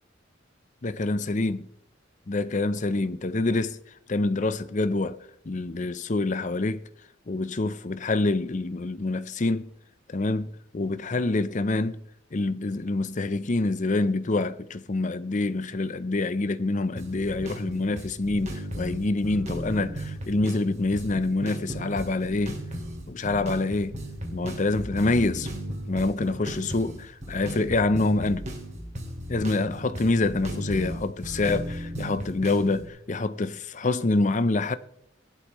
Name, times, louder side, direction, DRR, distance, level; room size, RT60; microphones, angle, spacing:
voice 1, 0.8-1.7 2.3-3.8 4.1-5.2 5.4-6.8 7.3-9.7 10.1-12.0 12.3-22.6 23.1-24.0 24.3-25.5 25.9-28.5 29.3-34.8, left 2 dB, 40° left, 0.6 m, -26 dB
sound 1, 17.0-32.9, equal, 35° right, 2.3 m, -36 dB
16.0 x 11.5 x 3.1 m
head